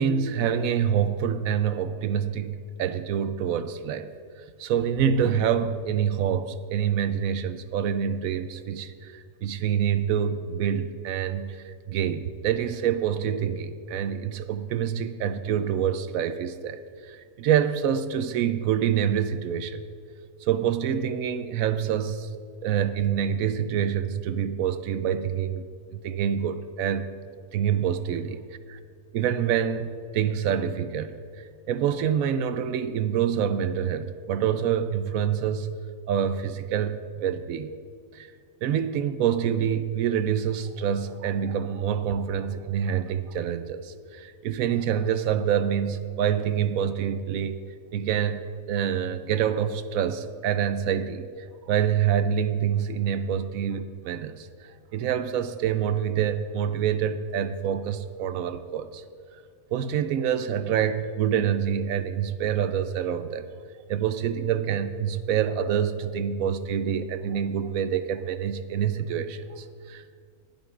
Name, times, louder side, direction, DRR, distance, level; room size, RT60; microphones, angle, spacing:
voice 1, 0.0-4.1 4.6-19.8 20.4-22.3 22.6-25.6 25.9-27.1 27.5-28.4 28.7-28.8 29.1-31.2 31.7-35.8 36.1-37.7 38.1-38.3 38.6-47.6 47.9-48.4 48.7-51.3 51.7-59.0 59.7-63.5 63.9-70.1, right 8 dB, 75° right, 11 dB, 1.0 m, -26 dB
20.5 x 9.2 x 2.4 m, 2.2 s
omnidirectional pair, 1.5 m